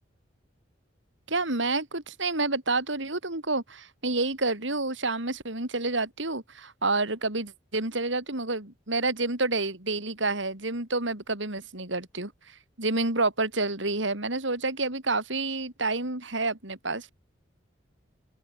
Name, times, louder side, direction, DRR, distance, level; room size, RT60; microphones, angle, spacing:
voice 1, 1.3-12.3 12.8-17.1, right 3 dB, 70° right, 4.2 m, -29 dB
open air
head